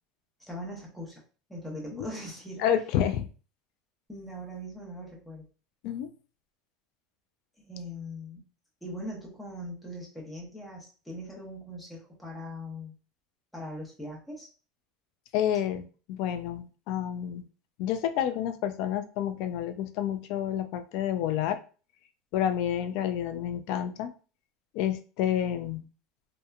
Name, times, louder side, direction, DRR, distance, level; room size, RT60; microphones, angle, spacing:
voice 1, 0.4-1.2 1.5-2.7 4.1-5.4 7.6-8.5 8.8-12.9 13.5-14.5, equal, 5° left, -3 dB, 0.8 m, -40 dB
voice 2, 2.6-3.3 5.8-6.1 15.3-17.4 17.8-21.6 22.3-24.1 24.7-25.8, left 10 dB, 65° left, 9 dB, 0.3 m, -29 dB
2.8 x 2.1 x 2.3 m, 0.37 s
supercardioid pair, 125°, 0 cm